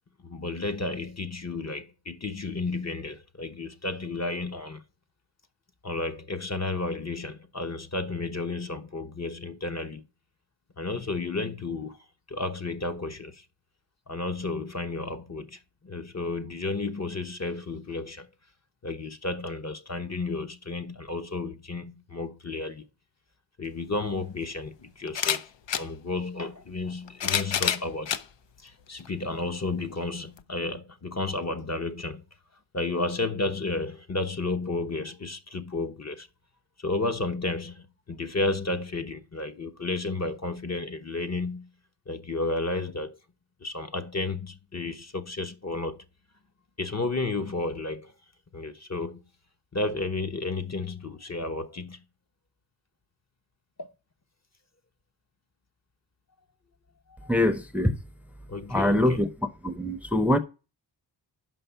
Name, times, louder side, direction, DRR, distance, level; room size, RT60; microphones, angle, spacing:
voice 1, 0.2-4.8 5.8-10.0 10.8-12.0 12.3-13.4 14.1-18.3 18.8-22.9 23.6-25.5 25.8-28.2 28.6-32.2 32.7-36.3 36.8-41.7 42.1-43.2 43.6-46.0 46.8-48.1 48.5-49.2 49.7-52.0 53.8-53.9 57.1-57.3 58.5-59.2, left 3 dB, 35° left, 1.0 m, -32 dB
sound 1, 23.7-23.8 25.1-25.9 26.9-28.2 29.0-29.1 30.4-30.5, left 9 dB, 70° left, 0.7 m, -28 dB
voice 2, 57.3-58.0 58.7-59.3 59.6-60.4, left 1 dB, 5° right, 0.7 m, -23 dB
5.7 x 5.4 x 6.8 m
cardioid pair, 60°, 45 cm